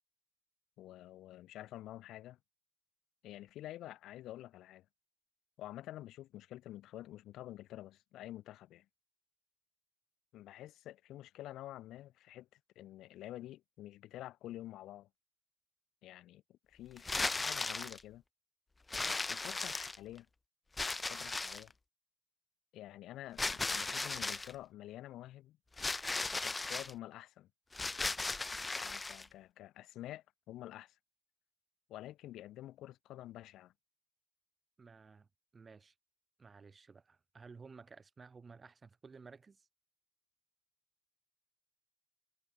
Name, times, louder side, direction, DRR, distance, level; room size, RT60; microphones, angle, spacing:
voice 1, 0.8-2.4 3.2-4.9 5.6-8.9 10.3-15.1 16.0-18.2 19.0-20.3 21.1-21.7 22.7-25.6 26.4-27.5 28.8-31.0 31.9-33.7, left 14 dB, 85° left, 0.6 m, -49 dB
sound 1, 17.0-18.0 18.9-20.2 20.8-21.7 23.4-24.5 25.8-26.9 27.7-29.3, left 3 dB, 20° left, 0.3 m, -36 dB
voice 2, 34.8-35.3 35.5-35.9 36.4-39.7, right 5 dB, 35° right, 4.5 m, -55 dB
cardioid pair, 90°, 0 cm